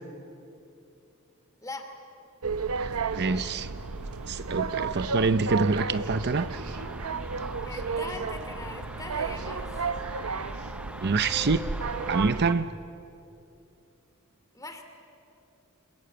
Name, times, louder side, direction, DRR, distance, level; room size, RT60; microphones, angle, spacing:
sound 1, 2.4-12.5, right 4 dB, 85° right, 0.9 m, -33 dB
voice 1, 2.8-3.7 4.3-6.6 11.0-11.6 12.1-12.7, right 4 dB, 50° right, 12 dB, 0.7 m, -26 dB
sound 2, 3.1-12.4, right 1 dB, 5° right, 0.7 m, -44 dB
voice 2, 7.6-9.8 14.5-14.8, left 2 dB, 15° left, 6 dB, 2.7 m, -40 dB
27.0 x 21.0 x 9.0 m, 2.7 s
head